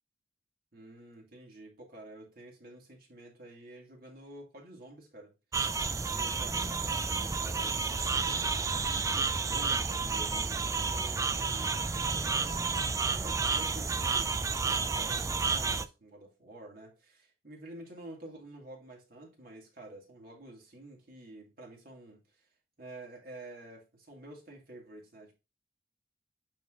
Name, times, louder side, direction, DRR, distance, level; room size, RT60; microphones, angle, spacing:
voice 1, 0.7-5.3 6.1-22.5 22.8-25.3, right 1 dB, 50° right, 2.5 m, -50 dB
sound 1, 5.5-15.8, right 4 dB, 15° right, 0.3 m, -31 dB
8.9 x 3.4 x 3.8 m
head